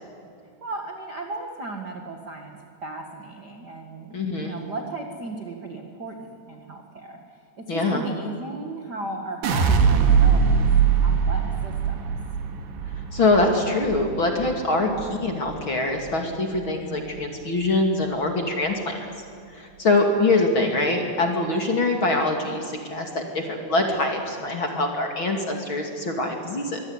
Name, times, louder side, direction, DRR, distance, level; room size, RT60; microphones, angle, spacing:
voice 1, 0.6-10.6 11.0-12.1 14.9-15.3 16.7-17.1, right 2 dB, 50° right, 3 dB, 1.2 m, -36 dB
voice 2, 4.1-4.6 7.7-8.0 13.1-18.9 19.5-26.8, left 2 dB, 35° left, 3 dB, 2.5 m, -24 dB
sound 1, 9.4-15.6 16.0-16.6, right 6 dB, 80° right, 4.1 m, -22 dB
24.5 x 22.0 x 9.7 m, 2.3 s
omnidirectional pair, 5.0 m